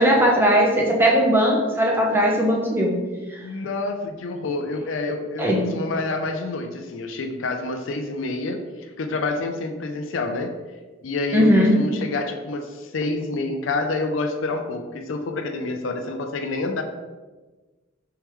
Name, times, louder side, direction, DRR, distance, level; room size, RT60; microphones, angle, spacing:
voice 1, 0.0-2.9 5.4-5.6 11.3-11.7, equal, 10° right, -2 dB, 0.7 m, -18 dB
voice 2, 3.4-10.5 11.0-16.8, left 2 dB, 80° left, 5 dB, 0.5 m, -28 dB
4.5 x 3.5 x 3.1 m, 1.2 s
head